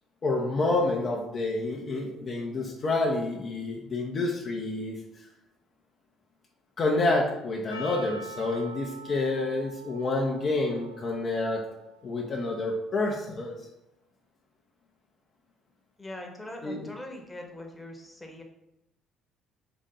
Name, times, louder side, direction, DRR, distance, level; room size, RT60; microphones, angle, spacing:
voice 1, 0.2-5.0 6.8-11.6 12.0-13.6 16.6-16.9, left 2 dB, 45° left, -1 dB, 0.7 m, -28 dB
Percussion, 7.7-12.3, right 2 dB, 85° left, 0.5 m, -45 dB
voice 2, 16.0-18.4, left 1 dB, 15° left, 2 dB, 1.1 m, -41 dB
3.9 x 3.6 x 3.8 m, 0.89 s
figure-of-eight pair, 50°, 0 cm